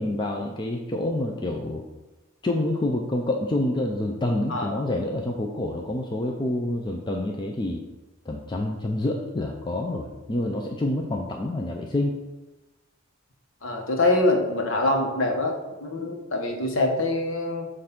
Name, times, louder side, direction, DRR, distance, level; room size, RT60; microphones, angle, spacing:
voice 1, 0.0-1.8 2.4-7.8 8.3-12.2, left 1 dB, 25° left, 0 dB, 0.4 m, -27 dB
voice 2, 4.5-4.8 13.6-17.7, left 2 dB, 75° left, 2 dB, 1.1 m, -24 dB
7.6 x 2.6 x 5.8 m, 1.1 s
head